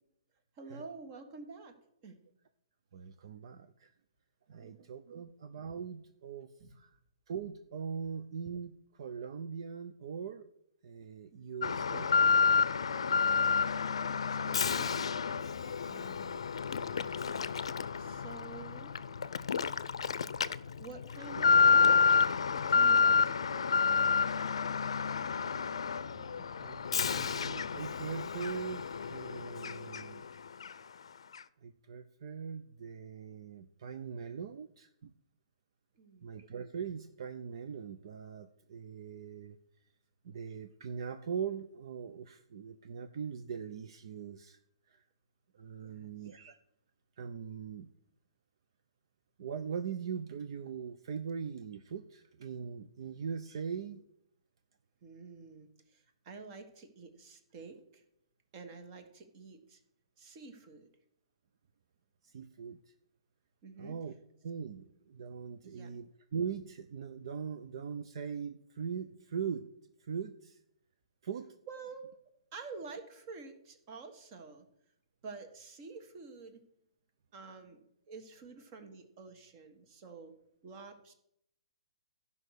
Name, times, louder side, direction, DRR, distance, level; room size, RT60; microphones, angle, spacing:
voice 1, 0.6-1.7 2.0-2.2 4.6-5.2 6.6-6.8 11.3-11.4 13.1-13.6 14.3-15.1 15.8-16.4 18.0-18.9 20.8-22.1 22.7-23.8 35.9-36.3 45.8-46.1 55.0-58.0 58.5-59.8 60.2-60.9 63.6-64.0 65.6-65.9 71.7-72.1 72.5-74.7 75.2-76.6 77.3-80.3 80.6-81.1, right 4 dB, 35° right, 7 dB, 1.6 m, -49 dB
voice 2, 2.9-3.9 4.5-7.0 7.3-10.5 10.8-12.1 26.1-30.2 31.6-35.1 36.2-39.6 40.2-44.6 44.9-45.0 45.5-46.5 47.2-47.9 49.4-54.0 62.2-62.8 63.8-64.1 64.4-69.6 70.0-70.6 71.2-71.5, right 6 dB, 60° right, 9 dB, 0.6 m, -41 dB
Alarm, 11.6-30.3 30.6-30.7 31.3-31.4, left 6 dB, 85° left, 0.5 m, -29 dB
12.5 x 5.5 x 6.5 m, 0.75 s
hypercardioid pair, 150°, 3 cm